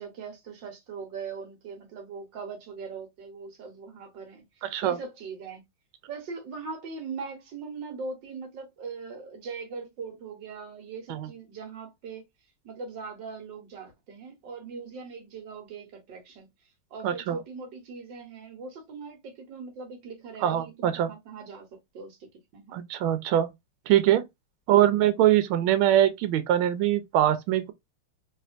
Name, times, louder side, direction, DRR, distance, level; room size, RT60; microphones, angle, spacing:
voice 1, 0.0-5.6 6.1-12.2 12.6-16.5 16.9-22.2 22.5-22.8, right 4 dB, 65° right, 1.6 m, -40 dB
voice 2, 4.6-5.0 11.1-11.3 17.0-17.4 20.4-21.1 22.7-23.5 23.9-24.2 24.7-27.7, right 12 dB, 80° right, 1.4 m, -23 dB
3.3 x 2.9 x 2.4 m
omnidirectional pair, 2.3 m